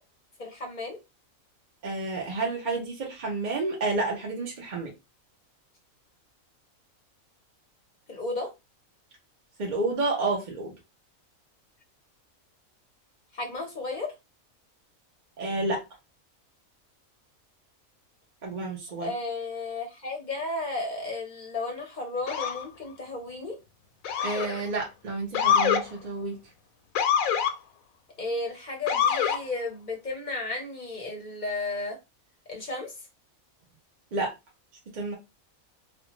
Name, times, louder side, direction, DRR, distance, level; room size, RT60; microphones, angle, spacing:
voice 1, 0.4-1.0 8.1-8.5 13.3-14.1 19.0-23.6 28.2-32.0 32.5-32.9, left 2 dB, 45° left, 0.7 m, -33 dB
voice 2, 1.8-4.9 9.6-10.7 15.4-15.8 18.4-19.1 24.2-26.4 34.1-34.3 34.9-35.1, right 3 dB, 45° right, 0.6 m, -30 dB
Motor vehicle (road) / Siren, 22.3-22.6 24.0-24.6 25.3-25.8 26.9-27.5 28.9-29.4, left 8 dB, 80° left, 1.0 m, -24 dB
2.5 x 2.3 x 2.8 m
omnidirectional pair, 1.4 m